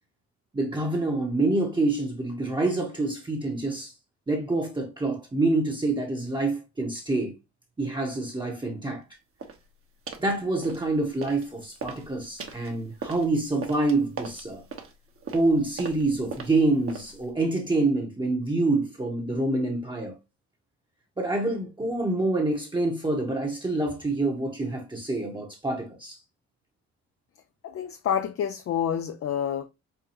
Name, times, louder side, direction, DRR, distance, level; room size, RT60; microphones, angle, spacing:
voice 1, 0.5-3.9 4.3-7.3 7.8-9.0 10.2-14.6 15.3-20.2 21.2-26.2, right 2 dB, 15° right, 0.9 m, -26 dB
sound 1, 9.4-9.6 10.1-10.3 10.6-11.5 11.7-17.3, right 5 dB, 45° right, 1.1 m, -40 dB
voice 2, 27.6-29.6, left 8 dB, 50° left, 0.5 m, -28 dB
5.5 x 2.3 x 2.8 m
cardioid pair, 90°, 30 cm